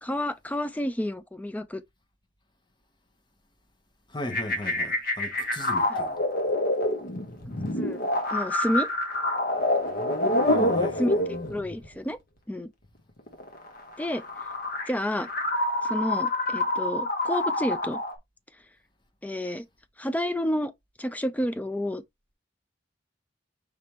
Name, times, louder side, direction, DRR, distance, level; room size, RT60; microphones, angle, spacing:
voice 1, 0.0-1.8 5.9-6.1 7.7-8.0 8.3-8.9 11.0-12.2 12.5-12.7 14.0-14.2 14.9-15.3 15.8-18.0 19.2-19.6 20.0-20.7 21.0-22.0, left 1 dB, 10° left, 0.4 m, -30 dB
voice 2, 4.1-6.2 10.4-11.0, left 1 dB, 25° left, 1.0 m, -37 dB
sound 1, 4.3-11.9 13.2-18.1, left 1 dB, 55° left, 1.2 m, -27 dB
5.0 x 3.4 x 2.9 m
head